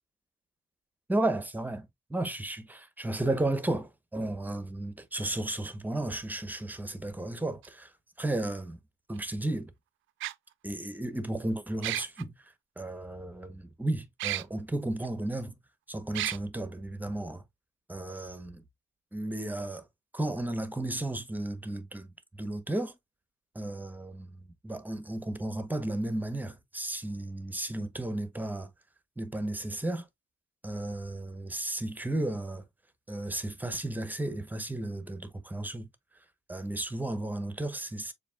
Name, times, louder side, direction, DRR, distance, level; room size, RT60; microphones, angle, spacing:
voice 1, 1.1-7.9 8.2-8.8 9.1-9.7 10.6-12.3 12.8-15.6 15.9-17.4 17.9-18.6 19.1-19.9 20.1-22.1 22.3-22.9 23.5-28.7 29.2-30.1 30.6-32.6 33.1-35.9 36.5-38.1, right 1 dB, 10° right, 0.8 m, -34 dB
sound 1, 7.6-7.7 9.2-9.3 10.2-10.3 11.8-12.2 14.2-14.4 15.0-15.1 16.1-16.4, right 15 dB, 80° right, 0.4 m, -32 dB
6.9 x 2.7 x 2.3 m
cardioid pair, 90°, 20 cm